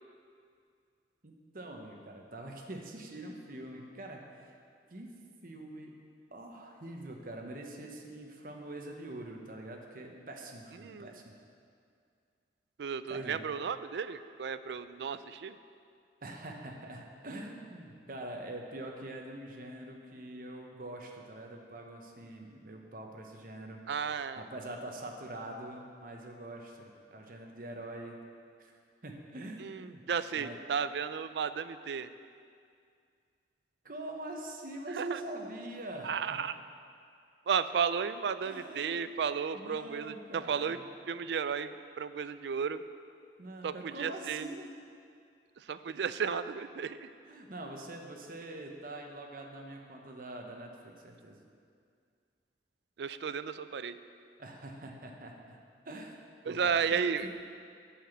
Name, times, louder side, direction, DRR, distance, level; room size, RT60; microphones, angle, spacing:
voice 1, 1.2-4.5 4.9-5.1 5.4-6.0 6.3-11.3 13.1-13.4 16.2-28.2 28.6-28.7 29.0-30.0 30.4-30.6 33.8-36.4 38.4-39.0 39.5-40.8 43.4-44.7 47.3-51.4 54.4-55.6 55.8-56.2 56.4-56.8 57.2-57.3, right 1 dB, 50° right, 1 dB, 1.1 m, -44 dB
voice 2, 10.8-11.2 12.8-15.6 23.9-24.4 29.6-32.1 34.9-35.2 36.0-36.5 37.5-40.8 41.1-42.8 43.6-44.5 45.6-47.1 53.0-54.0 56.4-57.3, right 6 dB, 75° right, 13 dB, 0.4 m, -33 dB
8.3 x 5.9 x 7.4 m, 2.3 s
head